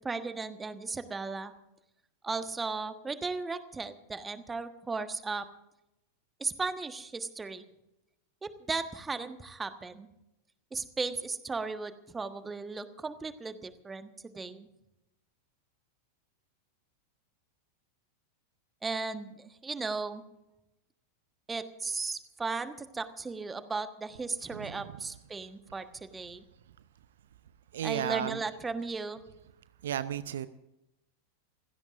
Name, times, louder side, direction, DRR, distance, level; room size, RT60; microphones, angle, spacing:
voice 1, 0.0-1.5 2.2-5.5 6.4-7.6 8.4-10.1 10.7-14.7 18.8-20.2 21.5-26.4 27.8-29.2, right 4 dB, 15° right, 10 dB, 1.4 m, -36 dB
voice 2, 24.5-25.0 27.7-28.4 29.8-30.5, right 10 dB, 60° right, 15 dB, 0.7 m, -34 dB
27.5 x 16.5 x 2.6 m, 0.89 s
figure-of-eight pair, 90°, 0 cm